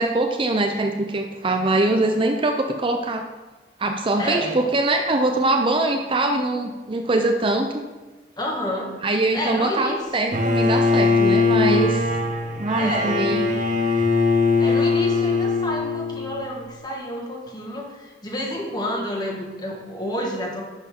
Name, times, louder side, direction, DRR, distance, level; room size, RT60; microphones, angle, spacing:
voice 1, 0.0-3.2 3.8-7.8 9.0-12.1 12.6-13.5, right 2 dB, 30° right, 4 dB, 0.5 m, -22 dB
voice 2, 4.2-4.6 8.4-8.9 9.3-10.0 12.7-13.2 14.6-20.6, equal, 25° left, -1 dB, 1.6 m, -29 dB
Bowed string instrument, 10.3-16.4, left 3 dB, 45° right, 0.9 m, -21 dB
11.0 x 6.4 x 3.7 m, 1.2 s
head